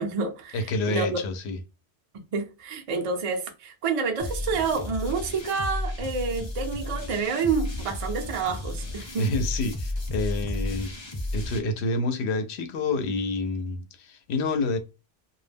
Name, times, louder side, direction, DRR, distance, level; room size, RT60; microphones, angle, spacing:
voice 1, 0.0-0.6 0.9-1.2 2.3-9.3, right 5 dB, 55° right, 0.4 m, -28 dB
voice 2, 0.5-1.6 9.2-10.9 11.3-14.8, left 2 dB, 85° left, 0.8 m, -28 dB
sound 1, 4.2-11.6, left 1 dB, 35° left, 0.6 m, -33 dB
2.2 x 2.0 x 3.3 m
omnidirectional pair, 1.1 m